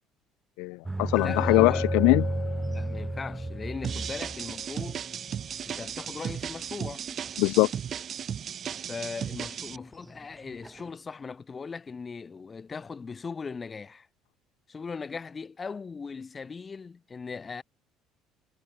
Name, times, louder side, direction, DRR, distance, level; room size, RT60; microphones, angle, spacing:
voice 1, 0.6-2.2 7.4-7.7, left 27 dB, 85° left, 1.0 m, -22 dB
sound 1, 0.8-7.6 8.3-8.7 9.0-9.1 9.6-10.9, right 2 dB, 10° right, 2.7 m, -33 dB
Glass, 1.2-5.3, left 10 dB, 50° left, 6.5 m, -39 dB
voice 2, 1.2-1.9 2.7-5.1 5.7-7.1 8.9-14.1 14.7-17.6, left 5 dB, 25° left, 6.2 m, -39 dB
sound 2, 3.8-9.8, right 8 dB, 40° right, 2.7 m, -36 dB
cardioid pair, 110°, 0 cm